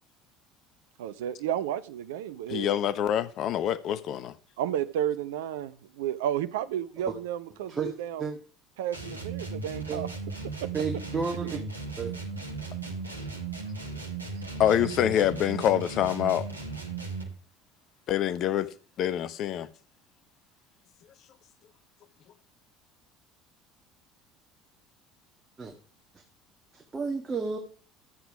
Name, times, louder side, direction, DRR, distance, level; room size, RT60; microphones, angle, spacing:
voice 1, 1.0-2.8 4.6-8.4 8.8-10.1 10.6-10.7 11.4-11.6, right 10 dB, 70° right, 0.6 m, -32 dB
voice 2, 2.5-4.3 14.6-16.5 18.1-18.7 19.0-19.7, left 10 dB, 50° left, 0.8 m, -26 dB
sound 1, 8.9-17.4, right 4 dB, 85° right, 1.3 m, -36 dB
voice 3, 10.7-11.6 12.0-12.1 25.6-25.7 26.7-27.6, right 5 dB, 25° right, 1.8 m, -31 dB
12.5 x 7.9 x 4.8 m
figure-of-eight pair, 60°, 0 cm